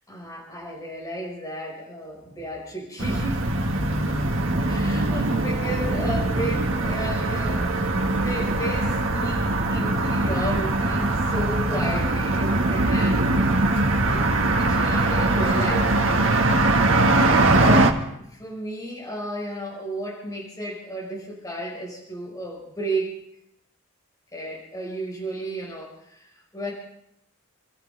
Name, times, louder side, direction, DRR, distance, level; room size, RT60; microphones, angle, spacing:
voice 1, 0.1-3.5 4.7-15.9 17.5-18.0 18.3-23.2 24.3-26.7, right 1 dB, 15° left, -3 dB, 4.6 m, -33 dB
sound 1, 3.0-17.9, right 2 dB, 70° right, 1.6 m, -22 dB
28.5 x 14.0 x 3.4 m, 0.76 s
head